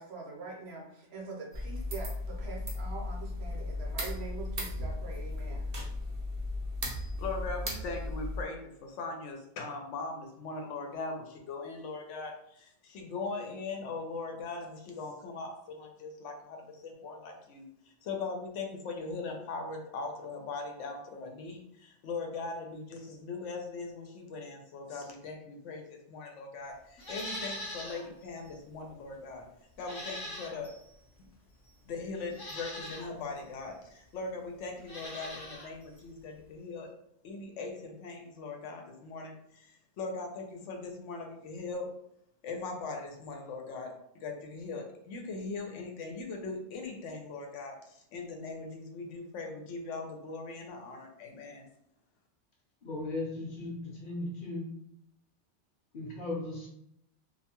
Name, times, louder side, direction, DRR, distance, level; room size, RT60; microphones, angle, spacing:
voice 1, 0.0-5.7, right 4 dB, 65° right, -2 dB, 0.9 m, -44 dB
sound 1, 1.5-8.4, left 1 dB, 45° right, 0.5 m, -36 dB
voice 2, 7.2-17.6 18.0-29.4 29.8-30.8 31.9-36.9 37.2-41.9 42.4-51.6, left 3 dB, 80° left, 2 dB, 0.9 m, -40 dB
Livestock farm animals working animals, 27.0-28.1 28.4-28.5 29.8-30.8 31.6-31.7 32.3-33.1 34.8-35.7 36.0-36.1, left 1 dB, 35° left, 0.3 m, -41 dB
voice 3, 52.8-54.6 55.9-56.7, left 2 dB, 55° left, -3 dB, 0.8 m, -37 dB
2.4 x 2.2 x 2.8 m, 0.75 s
omnidirectional pair, 1.2 m